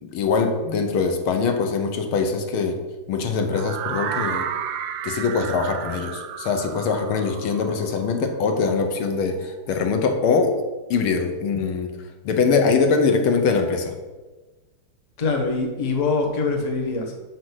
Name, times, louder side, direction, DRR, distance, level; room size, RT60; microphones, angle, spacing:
voice 1, 0.0-2.8 3.1-4.5 5.0-10.6 10.9-11.9 12.2-13.9, left 5 dB, 75° left, 5 dB, 1.7 m, -22 dB
sound 1, 3.5-9.4, right 8 dB, 75° right, 1.2 m, -32 dB
voice 2, 15.2-17.1, left 3 dB, 30° left, 2 dB, 0.8 m, -23 dB
6.3 x 5.4 x 6.2 m, 1.2 s
omnidirectional pair, 2.4 m